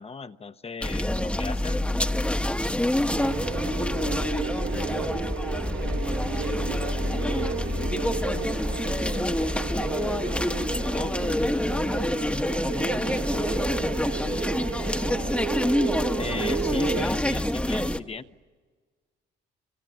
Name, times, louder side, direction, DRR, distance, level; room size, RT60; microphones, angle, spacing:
voice 1, 0.0-1.9 10.9-11.3 16.2-18.2, left 4 dB, 30° left, 11 dB, 1.0 m, -37 dB
sound 1, 0.8-18.0, left 1 dB, 5° left, 1.2 m, -27 dB
voice 2, 3.1-5.1 5.9-8.6 12.8-13.7 16.8-17.6, right 9 dB, 85° right, 5 dB, 1.6 m, -41 dB
sound 2, 3.2-17.0, right 8 dB, 70° right, 1.1 m, -34 dB
25.5 x 25.0 x 9.2 m, 1.4 s
cardioid pair, 90°, 20 cm